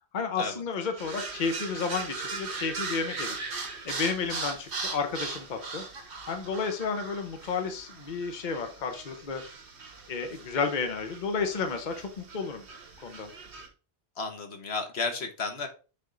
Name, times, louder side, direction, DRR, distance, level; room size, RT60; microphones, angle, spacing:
voice 1, 0.1-3.4 3.8-5.8 6.3-9.4 10.1-12.7 13.0-13.3, left 5 dB, 50° left, 6 dB, 0.9 m, -32 dB
sound 1, 1.0-13.7, right 4 dB, 85° right, 1.5 m, -39 dB
voice 2, 14.2-15.7, left 4 dB, 75° left, 5 dB, 1.4 m, -33 dB
7.7 x 3.5 x 3.8 m, 0.34 s
omnidirectional pair, 1.1 m